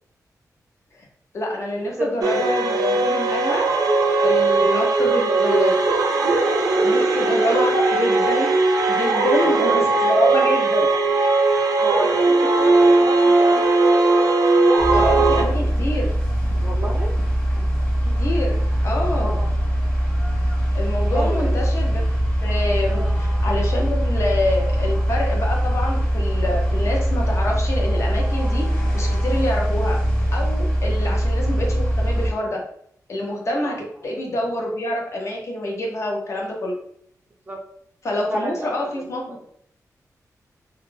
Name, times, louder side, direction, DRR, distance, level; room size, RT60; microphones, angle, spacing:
voice 1, 1.3-3.7 4.2-5.8 6.8-8.6 8.9-10.9 14.9-16.1 18.2-19.4 20.7-22.0 22.4-28.7 28.9-30.0 30.3-32.6 33.1-36.8 38.0-39.5, left 1 dB, 50° left, 0 dB, 0.6 m, -26 dB
voice 2, 2.0-2.4 3.1-3.3 4.2-4.4 6.7-7.7 8.2-8.5 9.4-9.9 11.8-13.8 16.6-17.1 19.1-19.5 21.1-21.7 22.9-23.1 30.9-31.0 33.6-33.8 37.5-37.6 38.3-39.1, right 2 dB, 25° right, -1 dB, 0.4 m, -31 dB
sound 1, 2.2-15.4, right 3 dB, 85° right, 0.5 m, -18 dB
sound 2, 14.8-32.3, equal, 15° left, 1.0 m, -22 dB
2.3 x 2.1 x 3.1 m, 0.67 s
wide cardioid pair, 155°, 6 cm